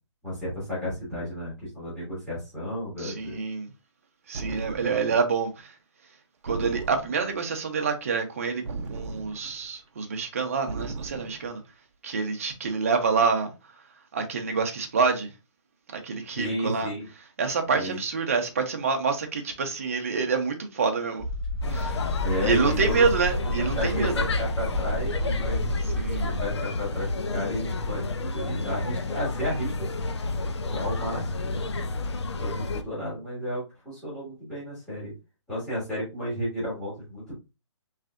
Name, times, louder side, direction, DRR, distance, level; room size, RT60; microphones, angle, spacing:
voice 1, 0.2-3.4 4.8-5.1 16.3-17.1 17.7-18.0 22.2-23.1 23.4-25.7 26.2-29.9 30.7-31.6 32.4-35.1 35.5-37.3, equal, 5° left, 1.5 m, -33 dB
voice 2, 3.0-3.7 4.3-5.7 6.4-8.6 8.9-11.6 12.0-13.5 14.1-15.3 15.9-16.9 17.4-21.3 21.7-22.1 22.4-24.1 26.0-26.2, right 5 dB, 30° right, 0.6 m, -27 dB
sound 1, 4.3-5.2 6.5-7.4 8.6-9.7 10.7-11.5, right 3 dB, 80° right, 0.6 m, -37 dB
sound 2, 21.2-26.5, left 1 dB, 20° left, 2.3 m, -31 dB
sound 3, 21.6-32.8, left 3 dB, 60° left, 0.5 m, -30 dB
3.7 x 3.2 x 2.4 m
hypercardioid pair, 175°, 16 cm